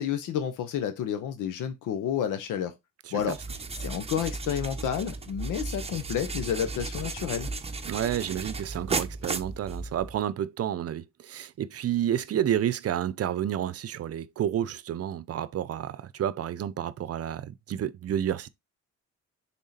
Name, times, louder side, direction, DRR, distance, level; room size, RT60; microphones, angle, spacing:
voice 1, 0.0-2.7 3.1-3.4 3.8-7.5, left 9 dB, 85° left, 0.9 m, -30 dB
sound 1, 3.2-10.2, right 3 dB, 20° right, 0.8 m, -35 dB
voice 2, 7.8-18.5, right 10 dB, 50° right, 0.7 m, -30 dB
6.3 x 3.8 x 4.1 m
cardioid pair, 90°, 30 cm